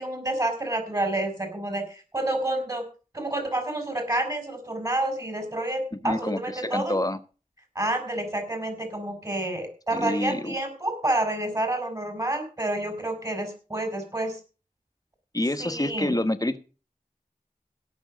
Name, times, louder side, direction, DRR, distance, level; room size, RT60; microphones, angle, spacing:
voice 1, 0.0-2.8 3.1-6.9 7.7-14.4 15.6-16.1, right 1 dB, 25° right, 5 dB, 4.7 m, -29 dB
voice 2, 6.0-7.2 9.9-10.5 15.3-16.6, left 1 dB, 25° left, 10 dB, 1.2 m, -27 dB
17.0 x 6.3 x 6.3 m, 0.35 s
wide cardioid pair, 50°, 14 cm